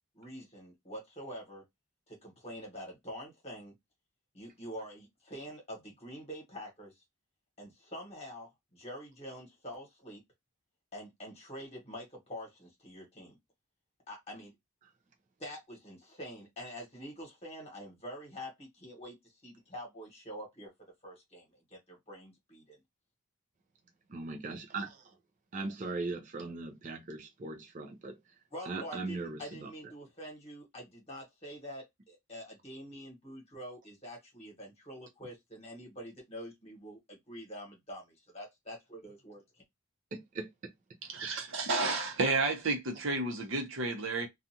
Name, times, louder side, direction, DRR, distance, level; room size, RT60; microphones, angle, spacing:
voice 1, 0.1-1.6 2.1-3.7 4.3-6.9 7.6-10.2 10.9-13.4 14.1-14.5 15.4-19.1 19.4-20.7 21.0-21.4 21.9-22.8 28.5-38.0 38.3-39.4, equal, 30° left, 1.1 m, -46 dB
voice 2, 24.1-25.0 25.5-28.2 28.7-29.7 40.1-40.5, right 3 dB, 35° right, 0.4 m, -39 dB
voice 3, 41.1-44.3, right 3 dB, 60° right, 0.8 m, -31 dB
2.5 x 2.4 x 2.7 m
head